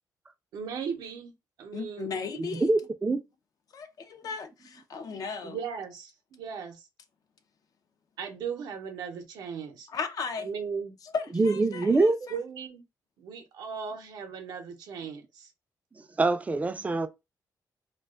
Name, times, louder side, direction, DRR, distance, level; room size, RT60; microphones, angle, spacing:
voice 1, 0.5-1.3 1.6-2.1 5.4-6.8 8.2-9.9 10.4-10.9 12.3-12.8 13.2-15.5, right 6 dB, 90° right, 0.6 m, -37 dB
voice 2, 1.7-2.7 3.7-5.6 9.9-10.5 11.0-12.4, left 5 dB, 60° left, 0.4 m, -36 dB
voice 3, 2.3-3.2 5.1-5.2 11.3-12.2 16.2-17.1, right 3 dB, 20° right, 0.3 m, -24 dB
2.4 x 2.2 x 2.3 m
cardioid pair, 90°, 7 cm